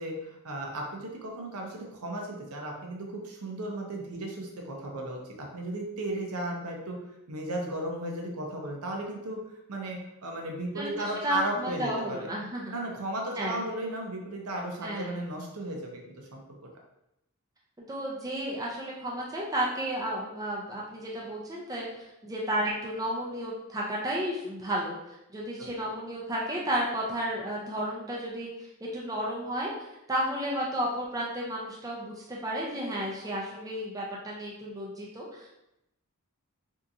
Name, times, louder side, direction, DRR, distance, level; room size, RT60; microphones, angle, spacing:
voice 1, 0.0-7.0 7.3-9.4 9.7-12.3 12.7-16.4 25.6-25.7, right 1 dB, 80° right, 0 dB, 0.7 m, -35 dB
voice 2, 11.2-12.7 13.4-13.6 14.8-15.2 17.8-21.8 22.2-29.7 30.1-35.5, equal, 15° right, -4 dB, 0.5 m, -32 dB
3.5 x 2.8 x 2.5 m, 0.86 s
head